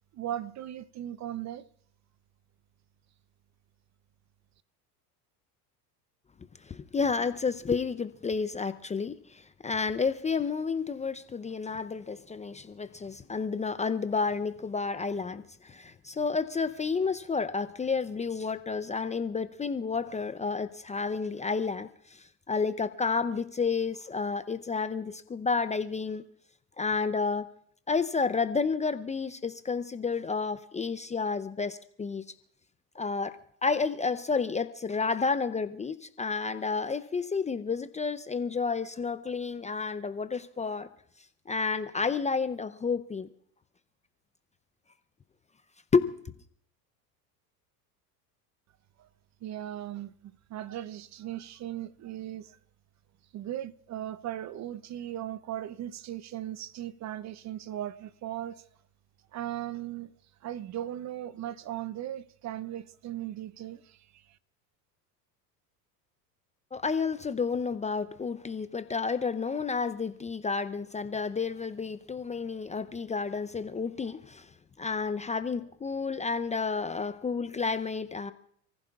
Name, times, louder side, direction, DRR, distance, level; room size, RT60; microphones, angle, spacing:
voice 1, 0.1-1.6 49.0-49.1 49.4-52.6 53.3-58.6 59.3-60.1 60.4-64.4, right 12 dB, 35° right, 0.7 m, -38 dB
voice 2, 6.7-26.2 26.8-27.4 27.9-32.2 33.0-33.4 33.6-40.9 41.5-43.3 45.9-46.1 66.7-74.5 74.8-78.3, left 5 dB, 15° left, 0.6 m, -31 dB
28.5 x 15.0 x 2.4 m
hypercardioid pair, 90°, 49 cm